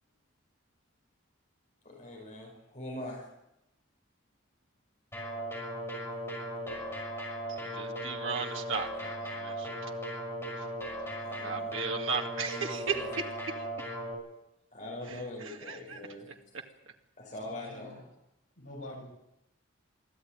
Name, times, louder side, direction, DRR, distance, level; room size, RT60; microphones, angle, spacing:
voice 1, 1.8-3.3 11.2-13.1 14.7-16.3 17.2-18.0, left 1 dB, 40° left, 0 dB, 5.2 m, -43 dB
sound 1, 5.1-14.1, equal, 10° left, 6.0 m, -37 dB
voice 2, 7.5-9.9 10.6-10.7 11.3-14.0 15.1-16.0 16.3-16.4, right 5 dB, 75° right, 3 dB, 2.1 m, -37 dB
voice 3, 17.3-18.0 18.6-19.1, left 1 dB, 70° left, 0 dB, 6.8 m, -46 dB
23.5 x 14.0 x 9.0 m, 0.87 s
head